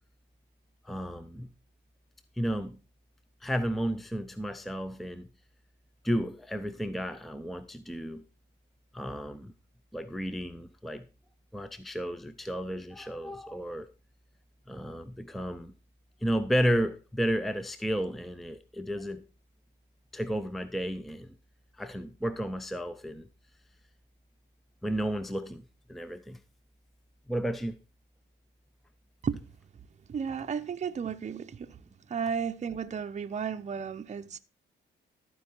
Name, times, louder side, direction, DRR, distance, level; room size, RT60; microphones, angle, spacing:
voice 1, 0.8-1.5 2.4-2.8 3.4-5.3 6.0-8.2 8.9-9.5 9.9-11.1 11.5-13.9 14.7-15.7 16.2-19.3 20.1-21.3 21.8-23.3 24.8-26.4 27.3-27.8, equal, ahead, 0.6 m, -32 dB
voice 2, 30.1-31.7 32.1-34.4, right 6 dB, 35° right, 0.7 m, -33 dB
14.0 x 4.8 x 4.5 m
cardioid pair, 90°, 20 cm